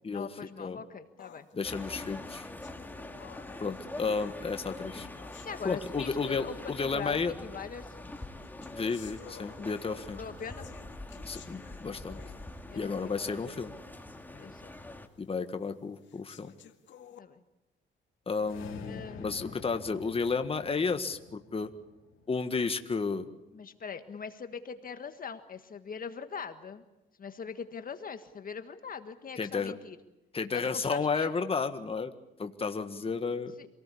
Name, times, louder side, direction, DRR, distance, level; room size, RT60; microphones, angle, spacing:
voice 1, 0.1-1.5 5.4-7.9 10.2-10.7 12.7-13.1 13.4-13.5 14.3-14.8 17.2-17.4 18.8-19.4 23.5-26.8 27.2-30.0 30.5-31.3 33.6-33.7, left 6 dB, 45° left, 9 dB, 1.6 m, -41 dB
sound 1, 1.2-6.3 7.2-7.3 8.1-13.3 13.8-13.9 14.4-14.5 15.2-15.3 16.0-17.2, left 9 dB, 70° left, 2.0 m, -54 dB
voice 2, 1.5-2.5 3.6-5.1 5.6-7.3 8.7-10.2 11.2-12.2 12.7-13.7 15.2-16.5 18.3-21.7 22.3-23.2 29.4-29.7 30.3-32.1 32.4-33.5, left 4 dB, 30° left, 8 dB, 1.7 m, -32 dB
sound 2, 1.6-15.1, left 2 dB, 10° left, 2.5 m, -44 dB
sound 3, 18.3-22.7, left 6 dB, 85° left, 3.3 m, -48 dB
27.0 x 18.5 x 8.6 m, 0.97 s
cardioid pair, 90°, 20 cm